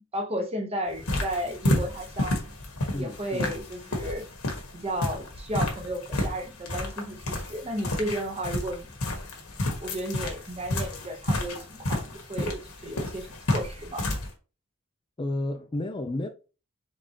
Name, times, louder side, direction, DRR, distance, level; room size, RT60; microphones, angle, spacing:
voice 1, 0.1-2.5 2.9-4.3 4.7-8.9 9.8-14.1, right 1 dB, 30° right, 0.9 m, -33 dB
sound 1, 0.9-14.3, left 1 dB, 75° left, 1.4 m, -31 dB
voice 2, 2.9-3.6 15.2-16.3, left 1 dB, 20° left, 0.4 m, -31 dB
4.7 x 3.6 x 2.9 m
head